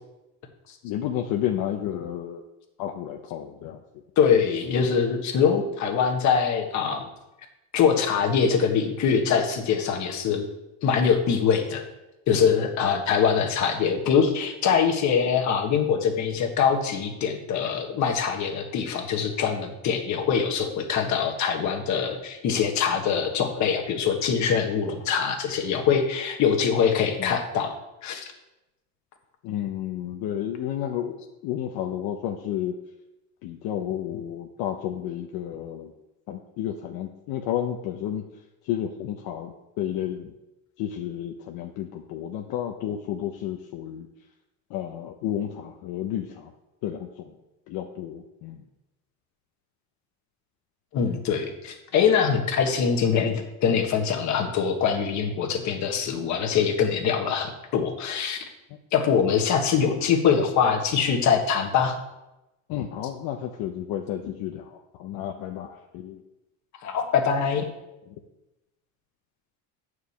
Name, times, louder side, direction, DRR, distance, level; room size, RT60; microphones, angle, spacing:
voice 1, 0.8-2.4 2.8-3.8 27.2-27.4 29.4-31.1 31.4-32.7 33.4-35.9 36.3-38.2 38.6-40.3 40.8-44.1 44.7-46.5 46.8-47.3 47.7-48.6 62.7-66.2 68.1-68.2, left 10 dB, 65° left, 3 dB, 0.9 m, -31 dB
voice 2, 4.2-7.1 7.7-10.4 10.8-11.8 12.3-27.7 28.0-28.3 50.9-58.4 58.9-61.9 66.8-67.7, left 7 dB, 45° left, 3 dB, 1.5 m, -23 dB
9.1 x 4.9 x 7.1 m, 0.97 s
cardioid pair, 150°, 38 cm